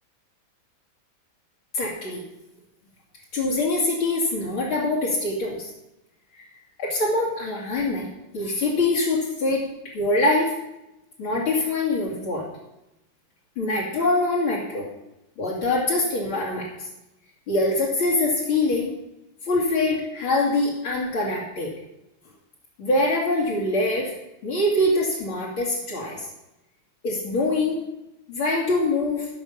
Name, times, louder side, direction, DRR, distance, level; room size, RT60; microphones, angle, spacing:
voice 1, 1.7-2.2 3.3-5.7 6.3-6.4 6.8-8.1 8.3-9.6 9.9-10.5 11.2-12.5 13.6-14.9 15.4-16.7 17.5-18.9 19.4-21.7 22.8-24.1 24.4-26.3 27.0-27.8 28.3-29.3, left 2 dB, 80° left, -6 dB, 3.4 m, -24 dB
15.5 x 5.5 x 7.4 m, 0.92 s
omnidirectional pair, 2.3 m